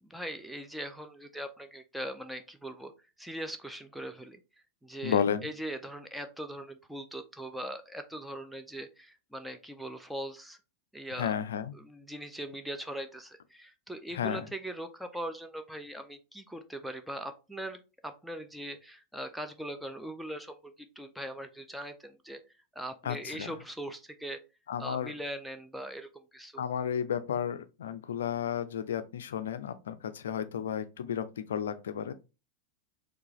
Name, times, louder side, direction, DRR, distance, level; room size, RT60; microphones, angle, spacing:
voice 1, 0.1-2.9 3.2-4.4 4.8-10.6 10.9-11.3 11.7-22.4 22.8-24.4 24.8-26.6, right 1 dB, ahead, 0.4 m, -40 dB
voice 2, 5.0-5.4 11.1-11.7 14.1-14.5 23.0-23.5 24.7-25.1 26.6-32.1, left 8 dB, 65° left, 0.4 m, -32 dB
4.6 x 2.3 x 3.0 m
figure-of-eight pair, 90°, 0 cm